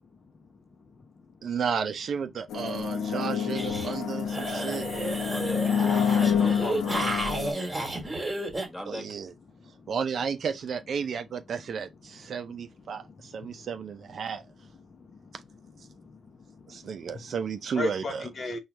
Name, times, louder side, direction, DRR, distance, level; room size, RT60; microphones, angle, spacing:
voice 1, 0.3-1.4 7.5-8.7 9.5-9.9 12.3-13.7 14.6-17.3 17.7-18.6, left 3 dB, 40° left, 0.7 m, -42 dB
voice 2, 1.4-4.9 8.9-9.3 9.9-14.4 16.7-18.3, right 6 dB, 55° right, 0.5 m, -33 dB
sound 1, 2.5-7.5, left 7 dB, 75° left, 0.8 m, -27 dB
sound 2, 3.5-4.0 4.3-8.7, right 2 dB, 15° right, 1.5 m, -32 dB
voice 3, 5.3-7.1 7.4-8.1 8.6-9.1, left 1 dB, 10° left, 1.5 m, -40 dB
4.4 x 2.4 x 3.1 m
cardioid pair, 90°, 0 cm